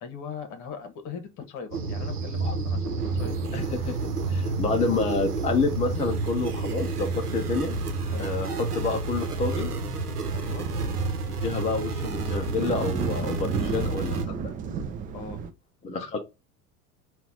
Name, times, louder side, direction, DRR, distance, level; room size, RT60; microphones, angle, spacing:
voice 1, 0.0-3.3 4.3-4.6 8.0-8.3 10.3-10.7 15.1-15.4, left 6 dB, 40° left, 1.3 m, -40 dB
sound 1, 1.7-14.2, right 3 dB, 75° right, 1.1 m, -30 dB
sound 2, 3.0-15.5, right 6 dB, 20° right, 0.4 m, -38 dB
voice 2, 3.5-7.8 8.2-9.7 11.4-14.4 15.8-16.2, left 4 dB, 15° left, 0.7 m, -28 dB
5.6 x 2.6 x 3.7 m
figure-of-eight pair, 75°, 46 cm